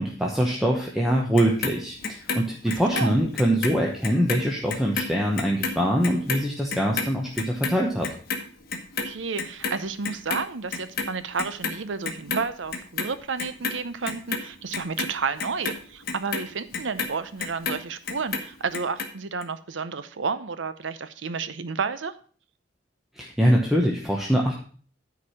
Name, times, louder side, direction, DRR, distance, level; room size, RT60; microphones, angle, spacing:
voice 1, 0.0-8.1 23.2-24.5, equal, ahead, -1 dB, 1.0 m, -23 dB
Clock, 1.4-3.8 4.0-10.5 10.7-11.8 12.0-13.1 13.4-17.8 18.1-19.1 19.4-19.5, left 4 dB, 55° left, 1.3 m, -30 dB
voice 2, 2.7-3.2 9.0-22.1, right 5 dB, 80° right, 13 dB, 0.7 m, -31 dB
9.6 x 4.9 x 5.6 m, 0.43 s
head